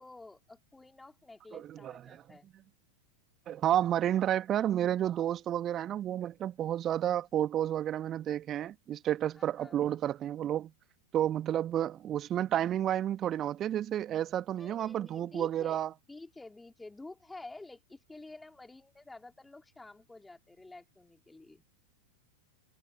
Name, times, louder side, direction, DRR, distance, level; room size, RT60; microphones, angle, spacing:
voice 1, 0.0-2.5 9.3-10.0 14.5-21.6, left 2 dB, 5° left, 4.7 m, -50 dB
voice 2, 1.5-2.2 3.5-10.7 11.1-15.9, right 11 dB, 30° right, 1.9 m, -31 dB
figure-of-eight pair, 90°, 0 cm